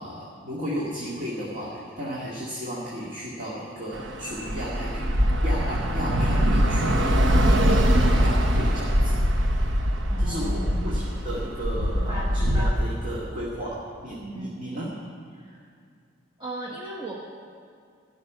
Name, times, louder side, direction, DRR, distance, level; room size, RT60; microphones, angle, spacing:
voice 1, 0.0-5.1 5.4-9.2 10.2-14.9, equal, 45° right, -5 dB, 2.0 m, -34 dB
Bus / Traffic noise roadway noise, 3.9-12.7, equal, 80° right, 1.0 m, -22 dB
voice 2, 10.1-10.9 11.7-12.7 14.2-14.6 15.4-15.6 16.4-17.2, right 1 dB, 25° right, -4 dB, 1.3 m, -36 dB
13.0 x 6.5 x 9.9 m, 2.3 s
head